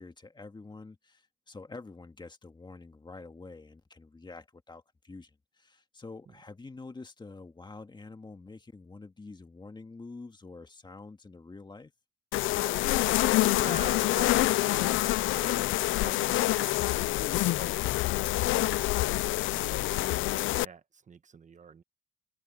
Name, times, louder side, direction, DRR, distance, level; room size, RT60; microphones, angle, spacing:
voice 1, 0.0-11.9, left 3 dB, 20° left, 2.0 m, -47 dB
sound 1, 12.3-20.6, left 17 dB, 80° left, 0.5 m, -26 dB
voice 2, 13.4-17.0 17.3-18.9 19.5-21.8, right 6 dB, 40° right, 1.2 m, -47 dB
cardioid pair, 90°, 20 cm